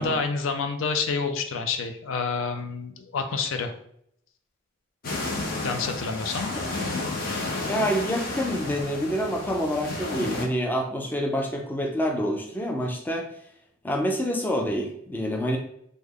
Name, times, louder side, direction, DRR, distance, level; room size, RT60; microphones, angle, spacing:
voice 1, 0.0-3.7 5.6-6.5, left 4 dB, 80° left, 6 dB, 0.4 m, -28 dB
sound 1, 5.0-10.5, left 2 dB, 50° left, 0.7 m, -31 dB
voice 2, 7.7-13.3 13.8-15.6, equal, 10° left, 1 dB, 0.4 m, -27 dB
3.2 x 2.1 x 3.6 m, 0.70 s
head